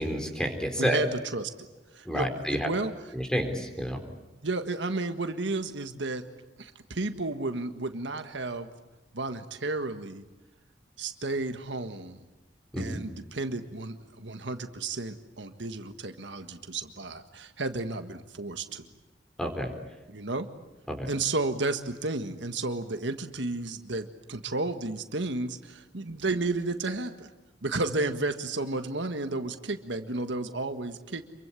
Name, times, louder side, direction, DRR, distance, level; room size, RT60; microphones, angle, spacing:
voice 1, 0.0-1.0 2.1-2.7 3.1-4.0 12.7-13.0 19.4-19.7 20.9-21.1, equal, 5° left, 5 dB, 4.0 m, -29 dB
voice 2, 0.7-1.5 1.9-2.9 4.4-6.2 6.6-8.7 9.1-10.2 11.0-12.2 12.8-18.9 20.1-20.5 21.1-27.3 27.6-31.2, right 2 dB, 75° right, 8 dB, 1.7 m, -32 dB
27.5 x 23.5 x 8.3 m, 1.1 s
head